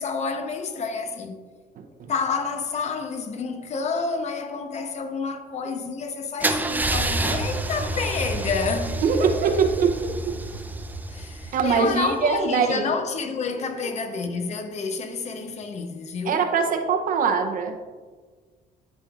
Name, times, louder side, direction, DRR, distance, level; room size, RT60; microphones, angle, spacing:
voice 1, 0.0-1.4 2.1-8.9 11.1-16.4, left 4 dB, 40° left, 0.8 m, -29 dB
Car / Engine starting / Idling, 6.4-12.3, right 2 dB, 10° right, 0.4 m, -28 dB
voice 2, 9.0-10.4 11.5-12.9 13.8-13.9 16.2-17.7, right 5 dB, 55° right, 0.7 m, -22 dB
11.5 x 5.3 x 2.4 m
cardioid pair, 110°, 17 cm